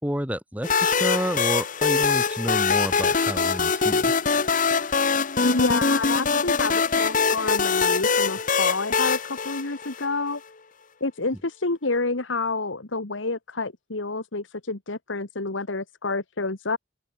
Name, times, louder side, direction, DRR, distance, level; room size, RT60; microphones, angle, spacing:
voice 1, 0.0-4.1, equal, 10° right, 4.3 m, -30 dB
sound 1, 0.6-10.3, left 5 dB, 45° left, 1.1 m, -23 dB
voice 2, 5.4-10.4 11.0-16.8, left 3 dB, 85° left, 1.8 m, -28 dB
open air
head